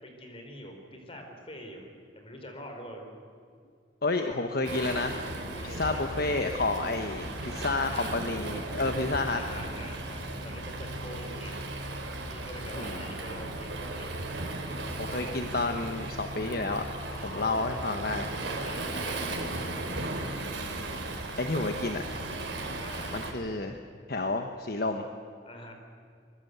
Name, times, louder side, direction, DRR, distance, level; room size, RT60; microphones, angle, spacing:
voice 1, 0.0-1.9 2.1-3.1 4.3-4.5 5.5-6.1 7.4-8.2 9.3-11.6 12.3-14.2 15.1-15.4 17.1-17.9 18.6-19.4 22.8-23.2 25.4-25.7, left 1 dB, 30° left, 4 dB, 4.3 m, -45 dB
voice 2, 4.0-9.4 12.7-13.0 15.0-16.9 17.2-18.3 21.4-22.0 23.1-23.8 24.1-25.1, left 3 dB, 50° left, 6 dB, 1.2 m, -30 dB
Waves surf, 4.6-23.3, right 2 dB, 70° right, 3.9 m, -36 dB
24.0 x 22.0 x 8.2 m, 2.2 s
head